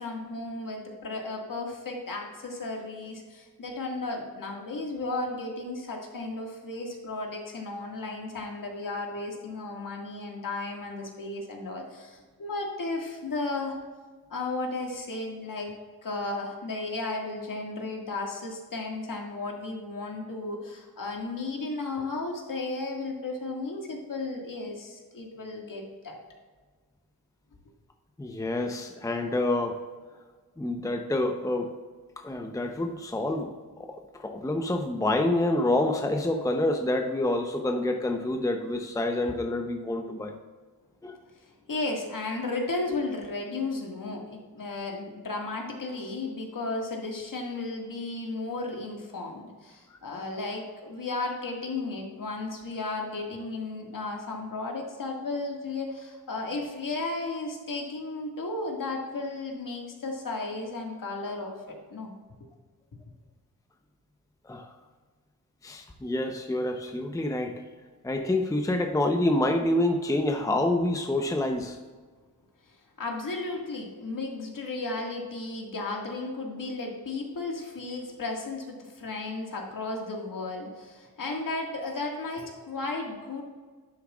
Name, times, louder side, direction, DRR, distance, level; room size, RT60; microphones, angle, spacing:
voice 1, 0.0-13.8 14.3-15.7 16.0-26.2 41.3-62.1 62.4-62.5 73.0-83.4, left 3 dB, 55° left, 0 dB, 2.0 m, -34 dB
voice 2, 28.2-29.8 30.6-31.7 32.2-33.5 33.8-40.3 41.0-41.2 49.9-50.0 64.4-64.7 65.6-67.5 68.0-71.8, left 1 dB, 10° left, 4 dB, 0.8 m, -27 dB
11.0 x 7.9 x 2.4 m, 1.4 s
cardioid pair, 65°, 39 cm